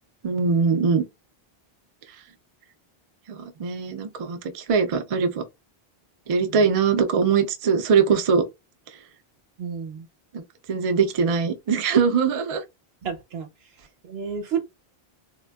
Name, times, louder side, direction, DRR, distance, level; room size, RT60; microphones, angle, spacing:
voice 1, 0.2-1.0 3.3-5.4 6.3-8.4 10.7-12.6, right 5 dB, 55° right, 0.4 m, -22 dB
voice 2, 9.6-10.1 13.0-13.5 14.0-14.6, right 6 dB, 70° right, 0.9 m, -31 dB
3.3 x 2.2 x 2.2 m
omnidirectional pair, 1.1 m